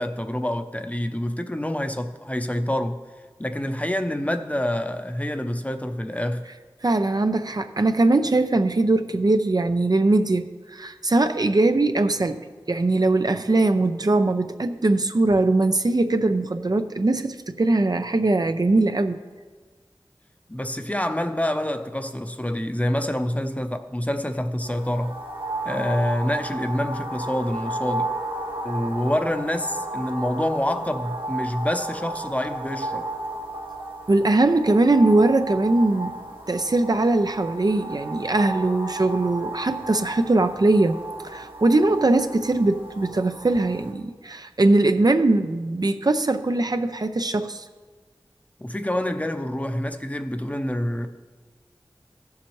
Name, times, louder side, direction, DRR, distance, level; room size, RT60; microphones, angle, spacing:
voice 1, 0.0-3.0 3.4-6.4 20.5-25.2 25.6-28.1 28.6-33.1 48.6-51.1, left 1 dB, 15° left, 0.7 m, -27 dB
voice 2, 6.8-12.4 12.7-19.2 34.1-36.1 36.5-41.0 41.2-47.6, right 2 dB, 50° right, 0.5 m, -21 dB
sound 1, 24.6-43.9, right 2 dB, 85° right, 1.8 m, -34 dB
15.5 x 7.2 x 3.1 m
wide cardioid pair, 40°, 9 cm